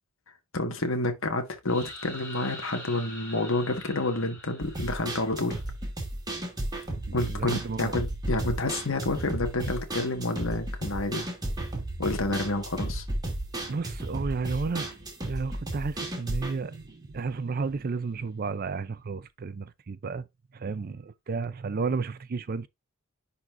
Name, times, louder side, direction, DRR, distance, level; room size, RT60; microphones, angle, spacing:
voice 1, 0.5-5.6 7.1-11.2 12.0-13.0, left 2 dB, 65° left, 1.5 m, -29 dB
sound 1, 1.7-5.5, left 2 dB, 15° left, 4.7 m, -44 dB
sound 2, 4.6-17.8 18.1-18.2 18.6-18.7, right 1 dB, 20° right, 2.5 m, -34 dB
voice 2, 7.1-7.9 13.7-14.9 15.2-20.2 20.5-22.7, right 4 dB, 45° right, 0.4 m, -32 dB
10.5 x 4.3 x 2.5 m
head